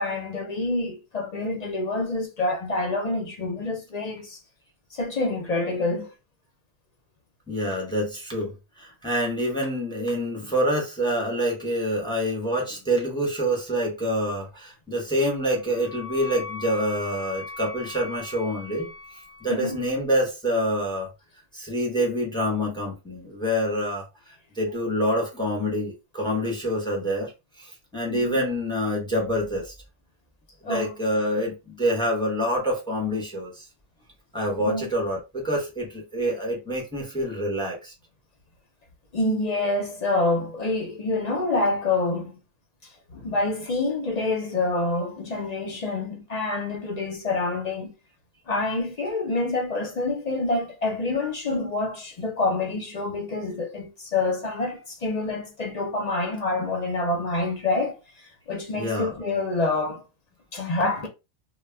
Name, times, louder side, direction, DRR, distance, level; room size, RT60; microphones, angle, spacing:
voice 1, 0.0-4.4 4.9-6.1 19.5-19.8 28.1-28.4 30.6-31.0 34.6-34.8 39.1-42.3 43.1-47.9 48.5-60.0 60.5-61.1, left 2 dB, 45° left, 0.6 m, -27 dB
voice 2, 7.5-8.5 8.8-21.1 21.5-27.3 27.6-29.7 30.6-33.6 34.3-37.9 58.7-59.2, equal, 5° left, 0.6 m, -27 dB
Wind instrument woodwind instrument, 15.2-20.0, left 4 dB, 35° right, 0.4 m, -40 dB
2.2 x 2.1 x 3.2 m
omnidirectional pair, 1.2 m